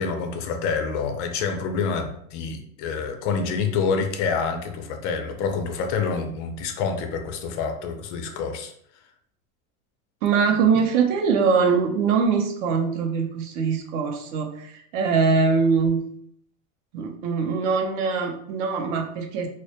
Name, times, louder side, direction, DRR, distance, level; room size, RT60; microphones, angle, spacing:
voice 1, 0.0-8.7, left 5 dB, 55° left, 5 dB, 0.5 m, -27 dB
voice 2, 10.2-16.1 16.9-19.5, right 5 dB, 60° right, 4 dB, 0.5 m, -22 dB
2.2 x 2.1 x 2.7 m, 0.68 s
supercardioid pair, 135°, 42 cm